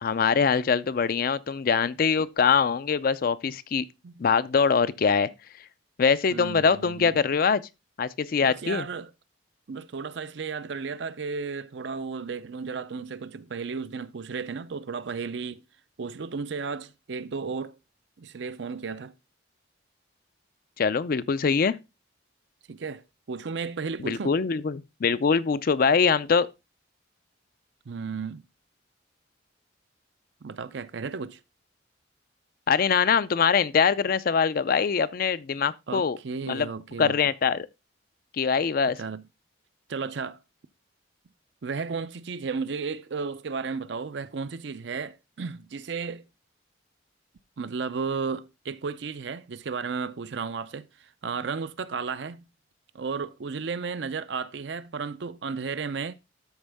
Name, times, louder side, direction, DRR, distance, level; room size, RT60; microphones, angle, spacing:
voice 1, 0.0-3.9 4.2-5.3 5.6-5.7 6.0-7.6 8.0-8.9 20.8-21.8 24.0-26.5 32.7-36.2 36.5-36.7 37.0-37.7 38.3-39.0, left 6 dB, 50° left, 0.4 m, -23 dB
voice 2, 6.3-7.2 8.4-9.1 9.7-15.6 16.0-17.8 18.2-19.1 22.7-24.3 27.9-28.4 30.4-31.4 35.9-37.2 39.0-39.2 39.9-40.4 41.6-46.3 47.6-52.5 52.9-56.1, right 5 dB, 60° right, 0.5 m, -34 dB
12.5 x 4.4 x 3.4 m
head